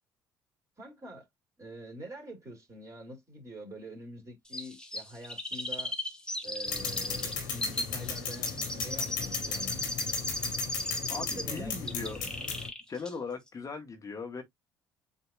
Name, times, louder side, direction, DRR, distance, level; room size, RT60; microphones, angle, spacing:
voice 1, 0.8-1.3 1.6-5.9 6.4-10.1 11.0-12.3, right 1 dB, 30° right, 3.0 m, -46 dB
Chirp tweet, 4.5-11.6 11.9-12.8 13.1-13.2, left 1 dB, 10° left, 1.1 m, -36 dB
sound 1, 6.7-12.7, left 5 dB, 80° left, 1.9 m, -36 dB
voice 2, 11.1-12.2 12.9-14.4, left 4 dB, 35° left, 1.3 m, -38 dB
7.9 x 2.8 x 2.4 m
figure-of-eight pair, 50°, 10 cm